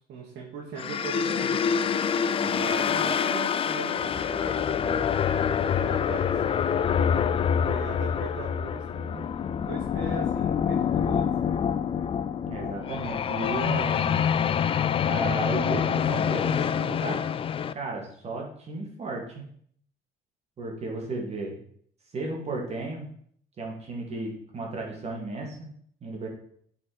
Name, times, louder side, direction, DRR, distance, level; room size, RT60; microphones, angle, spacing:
voice 1, 0.0-1.6 2.5-7.3 7.6-9.3 9.6-11.2, right 5 dB, 80° right, -2 dB, 1.6 m, -39 dB
sound 1, 0.8-17.7, left 7 dB, 35° left, 0.4 m, -26 dB
voice 2, 2.4-3.0 12.5-14.1 15.0-17.2 17.7-19.4 20.6-21.6 22.1-23.1 23.6-25.7 26.0-26.3, right 2 dB, 40° right, 0 dB, 2.1 m, -34 dB
8.3 x 4.5 x 4.7 m, 0.62 s
cardioid pair, 110°, 17 cm